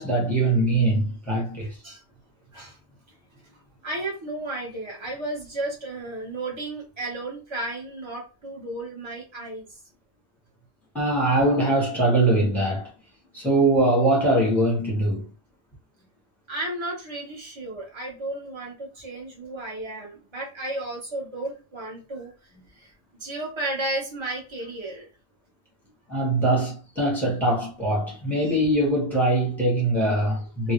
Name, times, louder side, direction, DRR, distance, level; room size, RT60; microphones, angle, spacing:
voice 1, 0.0-1.7 10.9-12.9 13.3-15.3 26.1-30.7, right 1 dB, ahead, 1.5 m, -22 dB
voice 2, 3.8-9.8 16.5-22.3 22.7-22.9 23.2-25.1 28.4-28.5, right 2 dB, 25° right, 1.3 m, -33 dB
3.8 x 2.4 x 3.1 m
omnidirectional pair, 1.2 m